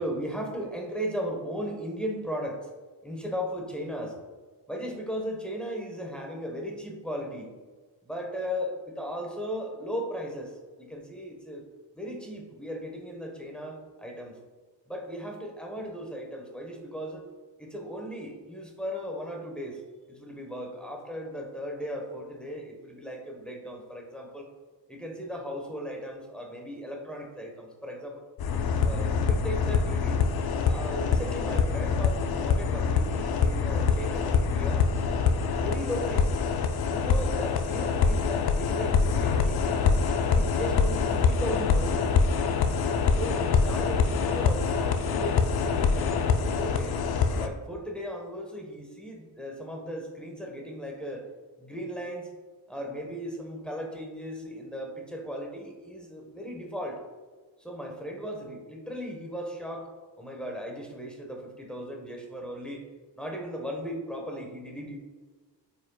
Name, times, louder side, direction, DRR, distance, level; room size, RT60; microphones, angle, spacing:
voice 1, 0.0-2.7 3.0-4.2 4.7-7.5 8.1-11.6 11.9-14.4 14.9-17.2 17.6-19.8 20.1-24.5 24.9-28.2 28.8-30.2 30.7-34.9 35.4-36.3 36.9-39.8 40.3-42.1 43.1-47.0 47.4-51.3 51.6-52.3 52.7-57.0 57.6-59.9 60.2-62.8 63.2-65.0, equal, ahead, 1 dB, 1.1 m, -37 dB
sound 1, 28.4-47.5, left 5 dB, 60° left, 0.6 m, -25 dB
8.7 x 5.2 x 2.3 m, 1.4 s
cardioid pair, 125°, 44 cm